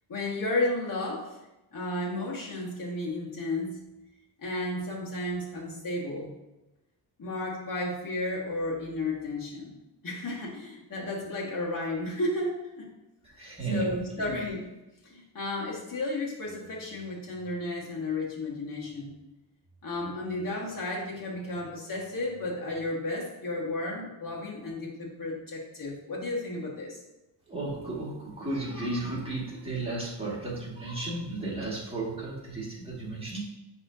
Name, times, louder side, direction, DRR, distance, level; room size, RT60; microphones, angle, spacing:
voice 1, 0.1-1.3 1.7-3.8 4.4-6.4 7.2-9.8 10.0-12.9 13.7-14.6 15.0-19.2 19.8-27.0, left 2 dB, 50° left, -3 dB, 1.9 m, -33 dB
voice 2, 13.2-14.3 27.5-33.5, right 2 dB, 15° right, -6 dB, 2.1 m, -34 dB
9.8 x 3.6 x 2.8 m, 0.99 s
wide cardioid pair, 115°, 43 cm